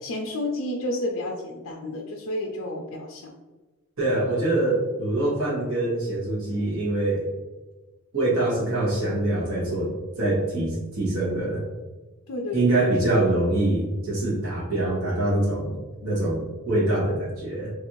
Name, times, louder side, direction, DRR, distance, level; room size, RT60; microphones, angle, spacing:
voice 1, 0.0-3.3 12.3-12.9, left 1 dB, 65° left, -1 dB, 0.4 m, -31 dB
voice 2, 4.0-7.3 8.1-11.6 12.5-17.7, right 2 dB, 75° right, -5 dB, 1.2 m, -24 dB
3.2 x 2.6 x 3.0 m, 1.2 s
head